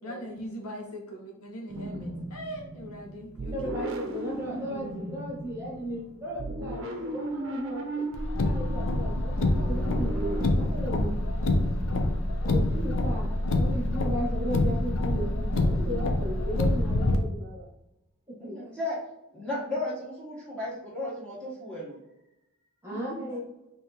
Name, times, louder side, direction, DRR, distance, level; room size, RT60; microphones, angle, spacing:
voice 1, 0.0-3.5 22.9-23.3, equal, 85° left, 2 dB, 1.1 m, -40 dB
sound 1, 1.7-10.5, right 2 dB, 60° right, 0.6 m, -37 dB
voice 2, 3.5-8.1 8.4-11.1 12.4-13.3 13.5-17.7 18.3-18.6 22.8-23.4, equal, 10° right, -5 dB, 1.4 m, -36 dB
Car, 8.1-17.2, left 1 dB, 65° left, 0.5 m, -26 dB
voice 3, 18.4-19.0 19.3-22.0, left 2 dB, 5° left, -7 dB, 1.1 m, -34 dB
5.8 x 2.9 x 2.8 m, 0.90 s
head